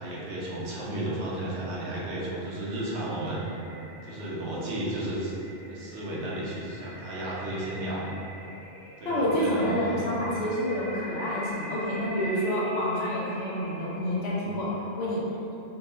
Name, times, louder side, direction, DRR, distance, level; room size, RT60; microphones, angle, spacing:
voice 1, 0.0-3.6 4.0-5.3 5.7-8.2 9.0-10.4 14.4-14.6, right 1 dB, 85° right, -6 dB, 1.1 m, -33 dB
sound 1, 2.1-14.8, right 1 dB, 25° right, 1.3 m, -44 dB
voice 2, 9.0-15.2, equal, 70° left, -7 dB, 1.1 m, -28 dB
4.7 x 2.8 x 2.6 m, 2.8 s
omnidirectional pair, 1.1 m